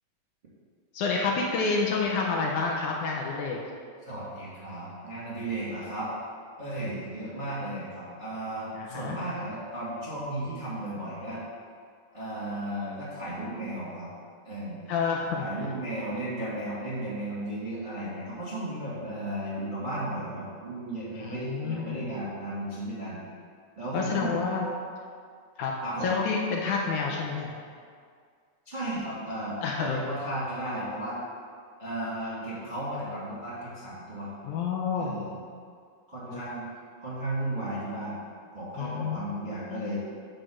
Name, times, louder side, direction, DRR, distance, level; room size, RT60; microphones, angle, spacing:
voice 1, 0.9-3.6 8.7-9.2 14.9-15.5 21.1-22.1 23.9-24.7 25.6-25.7 26.0-27.5 29.6-30.0 34.4-35.2 36.3-36.4 38.8-39.2 39.7-40.0, left 5 dB, 75° left, -1 dB, 2.0 m, -29 dB
voice 2, 4.0-6.1 6.6-11.4 12.1-14.1 14.4-14.8 15.4-23.2 23.8-24.4 25.8-26.2 28.6-29.6 29.8-31.2 31.8-34.3 35.0-35.5 36.1-36.7 37.0-38.2 38.5-40.0, right 1 dB, 25° right, -9 dB, 1.1 m, -34 dB
9.7 x 3.3 x 6.2 m, 2.1 s
omnidirectional pair, 3.8 m